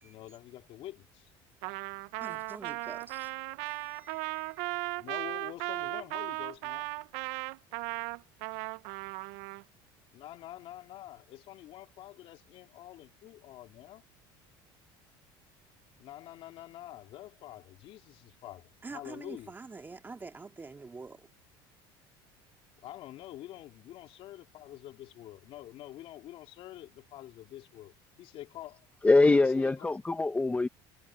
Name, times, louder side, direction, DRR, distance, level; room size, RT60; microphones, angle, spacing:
voice 1, 0.0-1.3 4.9-6.9 10.1-14.0 16.0-19.5 22.8-28.9 29.4-29.7, left 14 dB, 60° left, 2.8 m, -47 dB
Trumpet, 1.6-9.6, right 23 dB, 75° right, 0.6 m, -37 dB
voice 2, 2.2-3.3 3.7-4.8 18.8-21.3, right 4 dB, 20° right, 2.3 m, -46 dB
voice 3, 29.0-30.7, left 3 dB, 15° left, 1.0 m, -23 dB
supercardioid pair, 110°, 11 cm